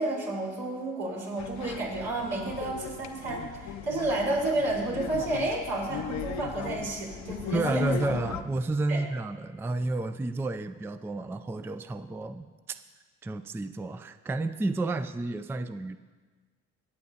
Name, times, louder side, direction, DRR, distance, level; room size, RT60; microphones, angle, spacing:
voice 1, 0.0-7.8 8.9-9.0, right 2 dB, 85° right, -5 dB, 4.1 m, -31 dB
sound 1, 1.4-8.4, left 8 dB, 65° left, 0.6 m, -37 dB
voice 2, 7.5-12.8 13.2-16.0, right 2 dB, 10° right, 11 dB, 0.3 m, -31 dB
24.0 x 8.3 x 2.8 m, 1.4 s
cardioid pair, 90°, 30 cm